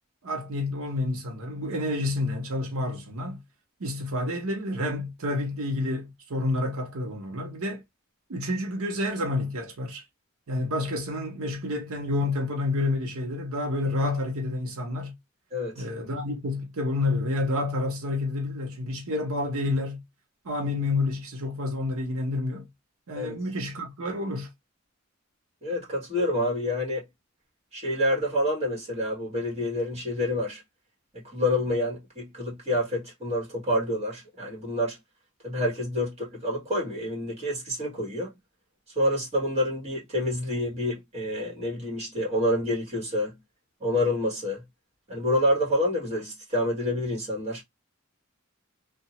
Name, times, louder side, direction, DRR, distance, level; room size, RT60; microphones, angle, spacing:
voice 1, 0.2-3.4 3.8-7.8 8.3-10.0 10.5-15.1 15.8-20.0 20.4-22.7 23.1-24.5, left 2 dB, 85° right, 0.8 m, -29 dB
voice 2, 15.5-15.9 23.1-23.4 25.6-27.0 27.7-30.6 31.3-35.0 35.4-38.3 38.9-43.3 43.8-44.6 45.1-47.6, left 1 dB, 30° right, 1.5 m, -28 dB
2.7 x 2.2 x 2.8 m
head